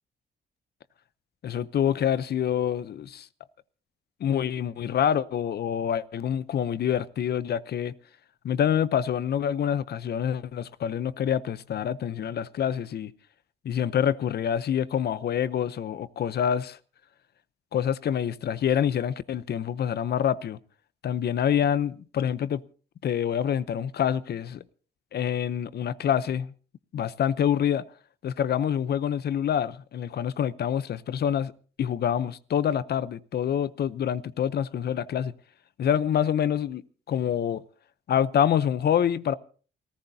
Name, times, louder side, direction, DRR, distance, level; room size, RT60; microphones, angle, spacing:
voice 1, 1.4-3.3 4.2-7.9 8.4-13.1 13.6-16.8 17.7-20.6 21.0-22.6 23.0-24.6 25.1-26.5 26.9-27.8 28.2-31.5 31.8-35.3 35.8-37.6 38.1-39.3, left 9 dB, 60° left, 0.7 m, -26 dB
29.0 x 14.5 x 2.8 m
cardioid pair, 105°, 19 cm